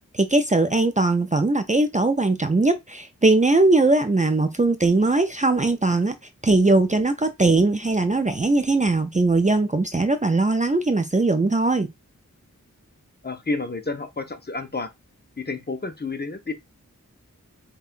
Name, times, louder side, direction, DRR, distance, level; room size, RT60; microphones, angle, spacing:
voice 1, 0.1-6.1 6.4-11.9, right 2 dB, 25° right, 0.4 m, -20 dB
voice 2, 13.2-14.9 15.4-16.5, left 3 dB, 30° left, 0.6 m, -30 dB
5.3 x 2.2 x 2.4 m
wide cardioid pair, 45°, 32 cm